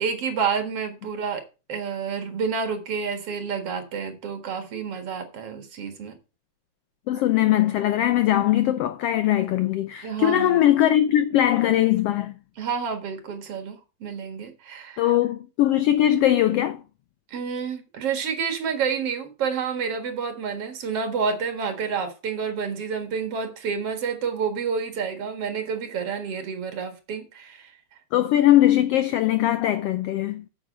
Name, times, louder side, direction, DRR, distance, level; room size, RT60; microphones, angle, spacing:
voice 1, 0.0-1.4 1.7-6.2 10.0-10.6 12.6-15.1 17.3-27.8, right 6 dB, 55° right, 2.5 m, -29 dB
voice 2, 7.1-12.3 15.0-16.8 28.1-30.4, left 12 dB, 85° left, 1.3 m, -20 dB
8.6 x 7.5 x 5.0 m
omnidirectional pair, 3.4 m